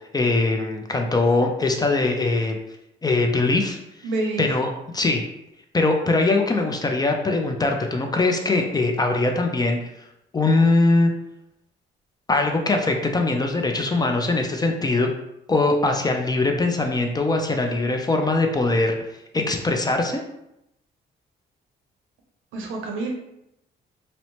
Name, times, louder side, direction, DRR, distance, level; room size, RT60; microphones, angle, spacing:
voice 1, 0.1-2.6 3.0-3.8 4.4-5.2 5.7-9.8 10.3-11.1 12.3-15.1 15.5-19.0 19.3-20.2, left 2 dB, 20° left, 3 dB, 0.3 m, -21 dB
voice 2, 4.0-4.5 22.5-23.1, right 2 dB, 80° right, 1 dB, 0.6 m, -27 dB
2.7 x 2.0 x 2.9 m, 0.85 s
cardioid pair, 90°, 20 cm